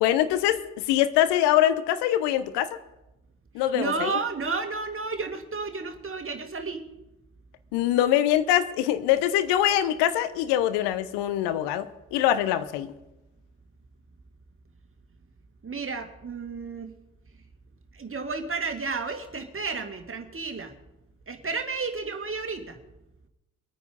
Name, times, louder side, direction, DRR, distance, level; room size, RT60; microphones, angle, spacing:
voice 1, 0.0-2.7 3.5-4.1 7.7-12.9, left 12 dB, 65° left, 13 dB, 1.1 m, -23 dB
voice 2, 3.6-6.8 15.6-16.9 17.9-20.8 21.3-22.8, right 4 dB, 30° right, 6 dB, 2.4 m, -32 dB
22.5 x 9.4 x 5.3 m, 0.96 s
figure-of-eight pair, 45°, 43 cm